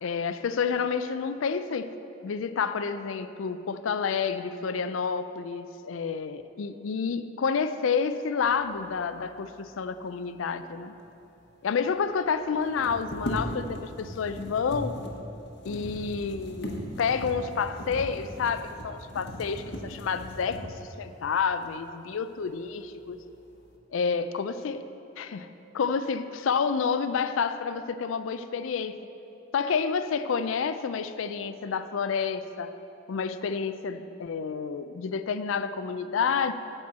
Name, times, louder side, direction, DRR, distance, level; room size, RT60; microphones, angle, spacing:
voice 1, 0.0-1.9 2.2-10.9 11.6-15.0 15.6-23.2 23.9-24.8 25.2-25.5 25.7-28.9 29.5-32.7 33.1-36.5, left 6 dB, 80° left, 11 dB, 0.4 m, -29 dB
sound 1, 11.1-11.2 11.4-11.5 12.6-20.9 21.6-21.7 22.2-22.8 23.2-23.7, equal, 55° left, 1.0 m, -38 dB
9.1 x 4.4 x 7.3 m, 3.0 s
head